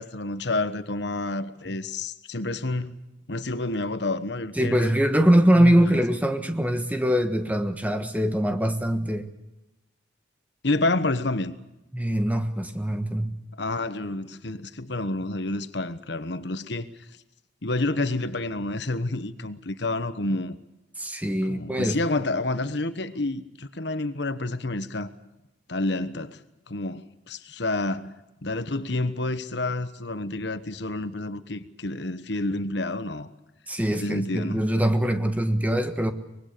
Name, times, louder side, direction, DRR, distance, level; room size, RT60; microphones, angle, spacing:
voice 1, 0.0-2.9 3.3-4.9 5.5-6.0 10.6-11.5 13.6-16.9 17.6-20.6 21.5-25.1 25.7-26.4 26.7-28.1 28.4-33.3 33.9-34.6, left 2 dB, 65° left, 1.2 m, -29 dB
voice 2, 4.6-9.3 11.9-13.3 21.0-22.0 33.7-36.1, equal, 10° right, 1.4 m, -23 dB
24.5 x 20.5 x 6.8 m
head